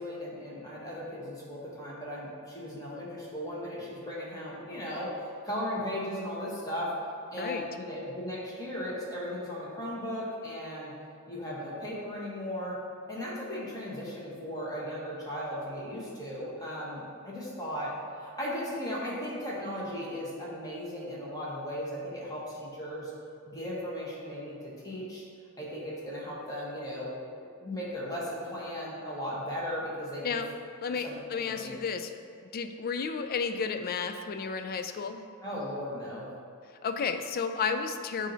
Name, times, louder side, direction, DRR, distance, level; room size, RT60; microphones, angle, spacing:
voice 1, 0.0-5.1 5.4-6.9 7.3-10.9 11.3-12.8 13.1-23.1 23.4-24.6 24.8-25.2 25.6-27.1 27.6-30.4 31.0-31.2 31.5-31.7 35.4-36.3, equal, 15° left, -6 dB, 1.4 m, -36 dB
voice 2, 30.8-32.1 32.4-35.2 36.8-38.3, left 5 dB, 45° left, 8 dB, 0.3 m, -32 dB
7.2 x 2.7 x 5.6 m, 2.2 s
head